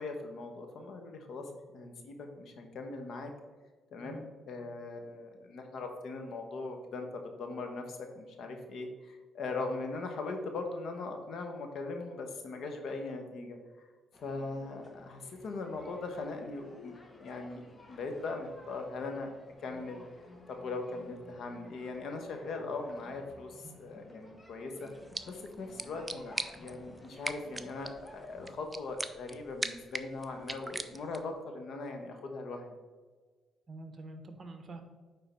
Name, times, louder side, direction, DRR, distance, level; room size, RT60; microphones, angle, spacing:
voice 1, 0.0-3.3 3.9-7.1 7.4-13.9 14.2-19.3 19.6-20.0 20.5-24.9 25.3-32.7, left 3 dB, 70° left, 4 dB, 1.1 m, -40 dB
sound 1, 14.1-28.5, left 2 dB, 25° left, 1.0 m, -55 dB
voice 2, 23.6-24.1 33.7-34.8, right 2 dB, 40° right, 6 dB, 1.0 m, -47 dB
sound 2, 24.9-31.4, right 2 dB, 15° right, 0.5 m, -42 dB
9.1 x 3.7 x 4.4 m, 1.4 s
cardioid pair, 90°, 0 cm